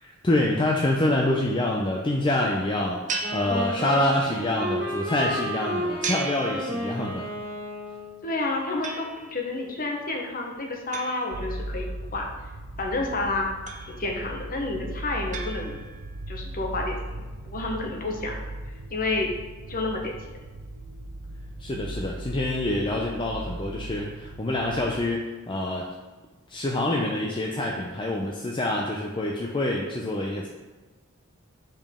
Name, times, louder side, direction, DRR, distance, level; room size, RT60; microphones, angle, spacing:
voice 1, 0.0-3.0 3.3-7.2 21.6-25.9 26.5-30.5, left 1 dB, 25° left, -2 dB, 0.6 m, -26 dB
sound 1, 3.1-4.3 6.0-7.3 8.8-9.5 10.9-12.1 13.7-14.4 15.3-16.2, right 4 dB, 35° right, 0.7 m, -36 dB
Wind instrument woodwind instrument, 3.2-8.2, equal, 10° right, 1.4 m, -32 dB
voice 2, 8.2-11.9 12.1-12.3 12.8-13.5 13.9-15.8 16.3-18.4 18.9-19.3 19.7-20.1, left 2 dB, 45° left, 1 dB, 1.1 m, -30 dB
sound 2, 11.3-25.1, right 1 dB, 90° right, 0.6 m, -38 dB
7.1 x 5.3 x 3.7 m, 1.3 s
head